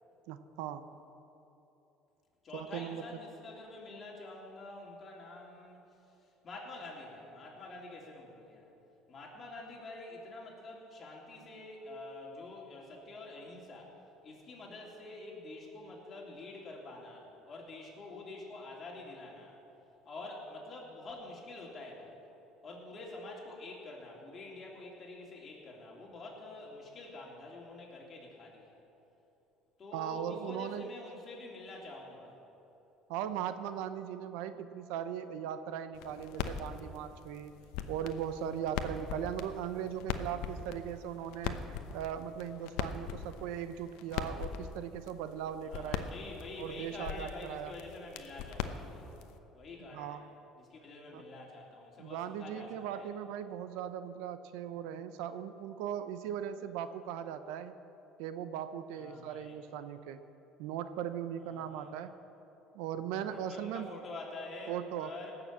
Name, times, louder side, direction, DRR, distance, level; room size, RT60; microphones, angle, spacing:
voice 1, 0.3-0.9 2.5-3.0 29.9-30.9 33.1-37.5 37.9-46.1 46.6-47.8 49.9-50.3 51.1-51.2 52.0-57.7 58.2-60.2 60.6-62.2 62.7-63.9 64.7-65.1, right 9 dB, 85° right, 11 dB, 0.7 m, -39 dB
voice 2, 2.4-5.8 6.4-8.7 9.1-13.9 14.2-19.6 20.0-22.2 22.6-28.8 29.8-32.4 45.6-49.1 49.5-50.2 50.6-53.1 58.9-59.6 61.4-61.9 63.2-65.3, left 2 dB, 35° left, -2 dB, 3.1 m, -47 dB
sound 1, 35.9-49.4, left 8 dB, 80° left, 0.8 m, -41 dB
18.0 x 6.9 x 7.4 m, 3.0 s
cardioid pair, 115°, 0 cm